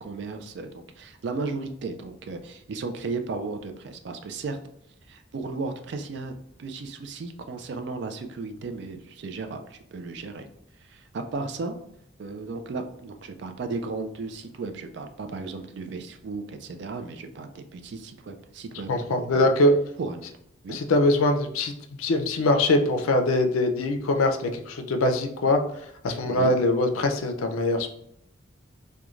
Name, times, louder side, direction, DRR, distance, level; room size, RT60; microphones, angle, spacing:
voice 1, 0.0-4.6 5.1-10.5 10.8-11.7 12.2-19.5 20.0-20.2 20.6-20.8 26.2-26.5, right 3 dB, 55° right, 6 dB, 0.3 m, -35 dB
voice 2, 18.9-19.8 20.7-27.9, left 1 dB, 90° left, 4 dB, 0.4 m, -23 dB
3.0 x 2.2 x 2.4 m, 0.73 s
head